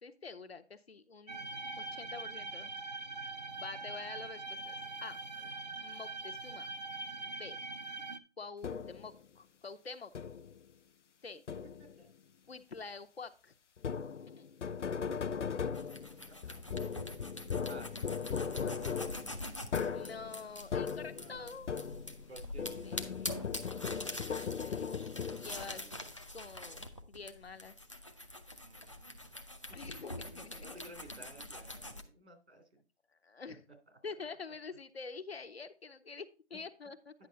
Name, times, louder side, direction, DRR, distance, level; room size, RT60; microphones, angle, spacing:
voice 1, 0.0-1.5 1.8-2.7 3.6-5.2 5.8-6.7 7.2-7.6 8.4-10.1 11.2-11.4 12.5-13.5 14.4-14.5 15.8-16.1 19.9-21.7 22.8-23.0 24.1-25.0 25.4-25.8 26.3-27.9 29.7-30.8 33.2-33.6 34.0-37.1, left 4 dB, 60° left, 10 dB, 0.9 m, -47 dB
sound 1, 1.3-8.2, right 3 dB, 40° right, 0.4 m, -43 dB
sound 2, 8.6-9.1 10.1-10.6 11.5-12.0 13.8-22.3 22.6-25.7, left 6 dB, 85° left, 0.6 m, -38 dB
sound 3, 15.7-32.0, left 1 dB, 25° left, 0.5 m, -45 dB
voice 2, 21.2-22.0 22.3-23.4 25.4-25.9 28.6-29.3 29.9-32.8, right 1 dB, 70° right, 5 dB, 3.1 m, -55 dB
10.0 x 5.4 x 4.0 m, 0.32 s
figure-of-eight pair, 165°, 35 cm